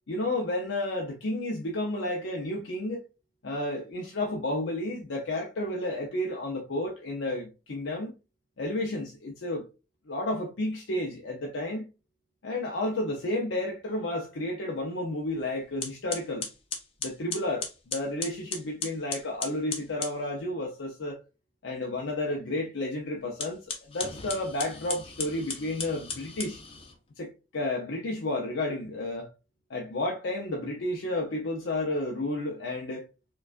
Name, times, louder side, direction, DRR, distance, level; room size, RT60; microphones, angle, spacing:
voice 1, 0.1-3.0 3.4-8.1 8.6-9.6 10.1-11.9 12.4-16.5 17.0-21.2 21.6-26.6 27.2-29.3 29.7-33.1, left 1 dB, 85° left, 0.6 m, -31 dB
sound 1, 15.3-15.4 15.8-20.2 23.3-27.0, left 5 dB, 30° left, 0.6 m, -37 dB
4.5 x 2.4 x 2.4 m
head